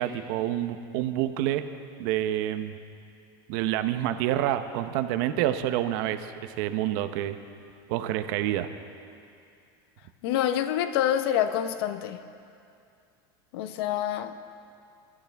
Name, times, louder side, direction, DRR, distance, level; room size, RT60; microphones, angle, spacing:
voice 1, 0.0-1.6 2.0-2.7 3.5-7.4 7.9-8.7, right 12 dB, 65° right, 10 dB, 0.8 m, -28 dB
voice 2, 10.2-12.2 13.5-14.4, left 10 dB, 75° left, 10 dB, 0.8 m, -27 dB
23.5 x 13.0 x 3.5 m, 2.5 s
supercardioid pair, 145°, 13 cm